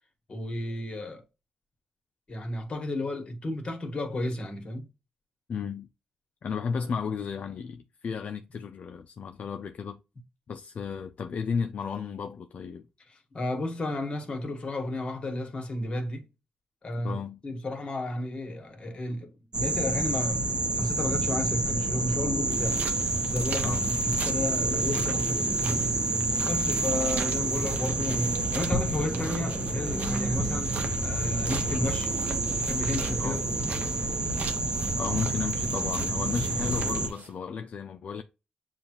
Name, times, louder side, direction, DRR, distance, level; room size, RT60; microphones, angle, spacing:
voice 1, 0.3-1.2 2.3-4.9 13.3-16.2 16.8-17.2 17.4-22.8 23.3-25.9 26.4-30.8 31.0-32.2 32.6-33.7, left 2 dB, 40° left, 1.4 m, -32 dB
voice 2, 5.5-5.9 6.4-10.0 10.5-12.9 17.0-17.4 23.6-23.9 33.2-33.5 35.0-38.2, left 6 dB, 60° left, 0.4 m, -33 dB
sound 1, 19.5-37.1, right 2 dB, 35° right, 0.9 m, -28 dB
sound 2, 22.5-37.3, right 5 dB, 70° right, 0.7 m, -41 dB
7.0 x 2.4 x 2.9 m
cardioid pair, 90°, 3 cm